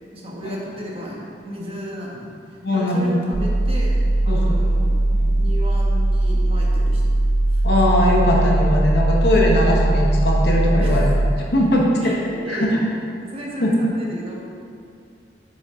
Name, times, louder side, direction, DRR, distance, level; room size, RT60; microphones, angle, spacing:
voice 1, 0.1-2.3 2.7-5.0 5.3-7.0 7.5-7.6 10.8-11.0 11.7-12.8 13.2-14.4, equal, 35° right, -3 dB, 1.2 m, -34 dB
voice 2, 2.6-3.1 4.2-4.5 5.1-5.3 7.6-11.1 11.5-11.8 12.5-12.8 13.6-13.7, left 1 dB, 60° left, -2 dB, 1.2 m, -20 dB
sound 1, 3.3-11.3, right 1 dB, 75° right, 0.6 m, -19 dB
7.2 x 6.5 x 3.7 m, 2.4 s
head